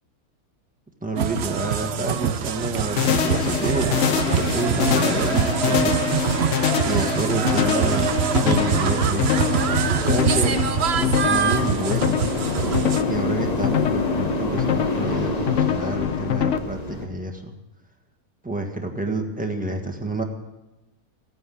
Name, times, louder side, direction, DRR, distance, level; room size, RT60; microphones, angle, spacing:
voice 1, 1.0-6.0 6.8-8.1 8.4-9.3 9.9-10.7 11.0-12.3 13.0-17.5 18.4-20.2, right 2 dB, 5° right, 2 dB, 1.5 m, -28 dB
sound 1, 1.2-13.0, right 8 dB, 55° right, 0.8 m, -24 dB
sound 2, 3.0-16.6, left 9 dB, 60° left, 1.0 m, -24 dB
sound 3, 3.2-17.1, left 1 dB, 25° left, 1.5 m, -31 dB
15.5 x 9.5 x 7.7 m, 1.0 s
omnidirectional pair, 1.6 m